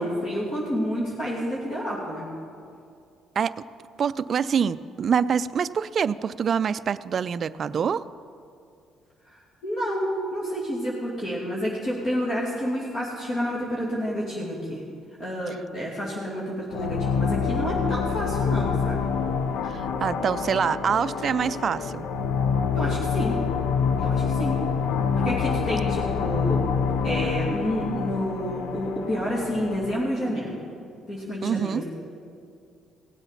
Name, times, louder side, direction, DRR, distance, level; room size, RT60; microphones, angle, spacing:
voice 1, 0.0-2.3 9.6-14.8 15.2-19.0 22.7-23.4 24.0-24.6 25.2-26.6 27.0-30.5 31.1-31.8, equal, 40° left, -6 dB, 2.6 m, -29 dB
voice 2, 4.0-8.0 19.7-22.1 31.4-31.8, right 7 dB, 45° right, 13 dB, 0.3 m, -25 dB
sound 1, 16.7-30.0, left 6 dB, 85° left, 0.7 m, -26 dB
17.5 x 8.1 x 5.8 m, 2.4 s
cardioid pair, 110°, 0 cm